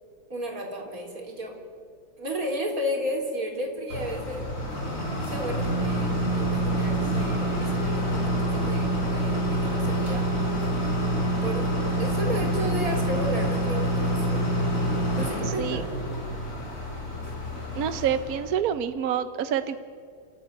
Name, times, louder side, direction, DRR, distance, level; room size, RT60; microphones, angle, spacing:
voice 1, 0.3-1.6 2.2-4.5 5.3-10.3 11.4-11.7 12.0-14.6 15.2-15.9, equal, 40° right, 1 dB, 4.0 m, -33 dB
sound 1, 3.9-18.6, right 1 dB, 35° left, 4.8 m, -27 dB
voice 2, 17.7-19.8, right 9 dB, 65° right, 11 dB, 0.9 m, -27 dB
30.0 x 14.5 x 9.4 m, 2.2 s
omnidirectional pair, 2.3 m